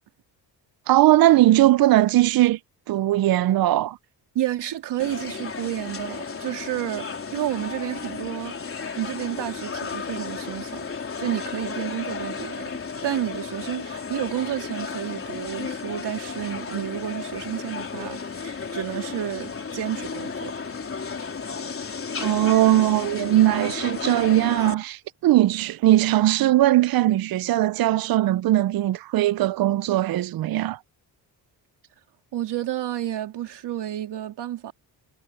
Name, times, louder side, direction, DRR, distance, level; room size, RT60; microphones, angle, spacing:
voice 1, 0.9-2.6 2.9-4.0 22.2-30.8, right 14 dB, 55° right, 0.6 m, -19 dB
voice 2, 4.3-8.6 9.0-10.9 11.2-12.6 13.0-20.5 32.3-34.7, right 12 dB, 75° right, 3.6 m, -30 dB
sound 1, 5.0-24.7, left 5 dB, 30° left, 3.7 m, -33 dB
cardioid pair, 120°, 42 cm